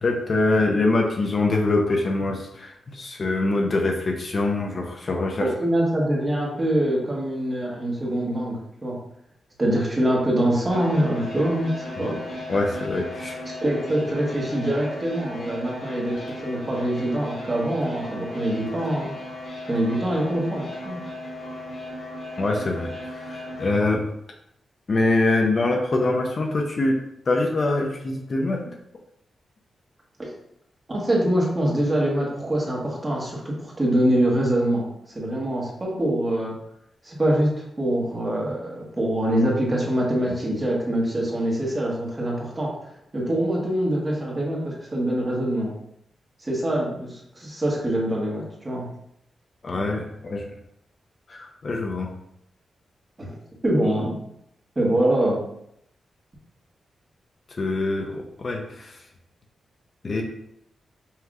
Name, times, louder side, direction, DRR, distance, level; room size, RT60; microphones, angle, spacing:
voice 1, 0.0-5.5 12.5-13.4 22.4-24.0 24.9-27.0 27.3-28.7 49.6-50.4 51.3-52.1 57.6-59.0 60.0-60.2, left 2 dB, 45° left, 1 dB, 0.7 m, -24 dB
voice 2, 5.4-9.0 9.6-12.2 13.6-19.1 19.7-21.0 30.2-30.3 30.9-36.5 37.0-42.7 43.1-45.7 46.4-48.9 53.2-53.4 53.6-54.2 54.7-55.4, right 1 dB, 25° right, -3 dB, 1.4 m, -24 dB
sound 1, 10.7-23.7, left 1 dB, 65° left, 1.4 m, -36 dB
5.6 x 3.1 x 2.4 m, 0.75 s
cardioid pair, 90°, 0 cm